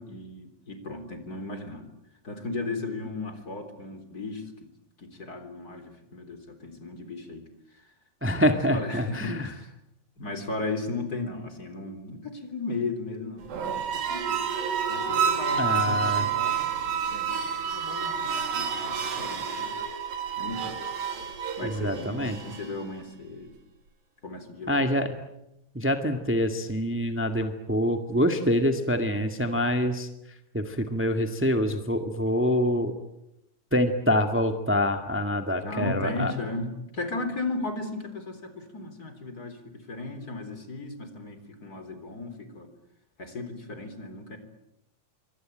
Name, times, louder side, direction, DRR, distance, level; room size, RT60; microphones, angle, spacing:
voice 1, 0.0-1.9 2.2-4.4 5.0-7.5 7.7-7.9 8.5-9.7 10.2-14.4 14.9-19.8 20.4-20.8 21.6-23.6 24.2-24.9 35.6-42.7 43.2-44.4, left 3 dB, 25° left, 8 dB, 4.0 m, -36 dB
voice 2, 8.2-9.5 15.6-16.2 21.6-22.4 24.7-25.2 25.7-30.1 30.5-32.9 33.7-36.3, equal, 10° right, 6 dB, 0.6 m, -25 dB
sound 1, 13.4-22.8, right 7 dB, 90° right, 4.5 m, -29 dB
27.0 x 24.5 x 8.9 m, 0.86 s
omnidirectional pair, 4.0 m